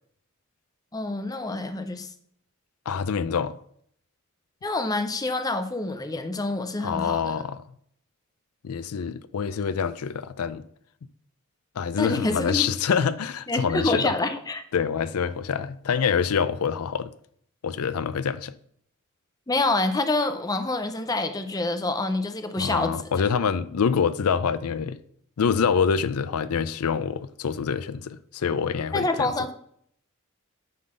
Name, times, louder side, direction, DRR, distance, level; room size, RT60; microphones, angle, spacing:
voice 1, 0.9-2.1 4.6-7.4 12.0-12.7 13.5-14.6 19.5-23.1 28.9-29.5, left 2 dB, 15° left, 0.6 m, -27 dB
voice 2, 2.9-3.6 6.8-7.6 8.6-10.6 11.8-14.1 14.7-17.1 17.6-18.5 22.6-25.0 25.4-29.3, left 6 dB, 90° left, 0.5 m, -26 dB
9.4 x 3.9 x 6.4 m
head